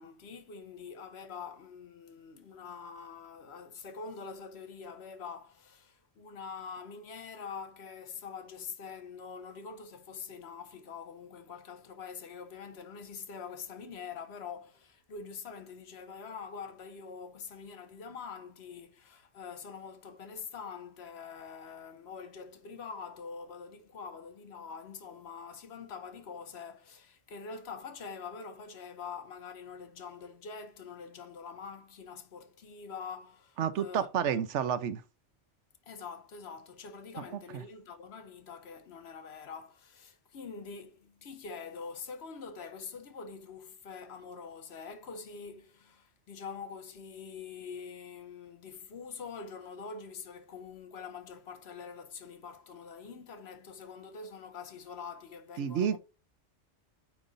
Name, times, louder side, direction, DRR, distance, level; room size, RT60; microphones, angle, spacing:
voice 1, 0.0-34.1 34.3-34.4 35.9-56.0, left 5 dB, 65° left, 1.0 m, -45 dB
voice 2, 33.6-35.0 37.5-37.6 55.6-56.0, right 8 dB, 75° right, 1.0 m, -30 dB
8.8 x 3.1 x 3.9 m
omnidirectional pair, 1.2 m